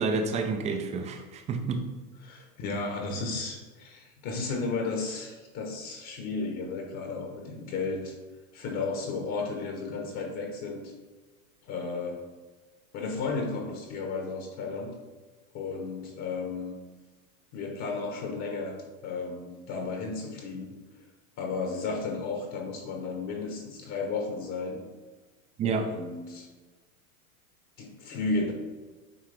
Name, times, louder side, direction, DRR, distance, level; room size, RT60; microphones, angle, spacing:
voice 1, 0.0-1.8 25.6-25.9, right 4 dB, 15° right, 5 dB, 0.5 m, -29 dB
voice 2, 2.2-8.1 8.5-10.9 11.7-12.2 12.9-14.9 15.5-16.7 17.5-18.7 19.0-20.7 21.4-24.8 25.6-26.5 27.8-28.5, left 4 dB, 40° left, 1 dB, 1.3 m, -33 dB
9.2 x 3.2 x 3.4 m, 1.3 s
hypercardioid pair, 130°, 43 cm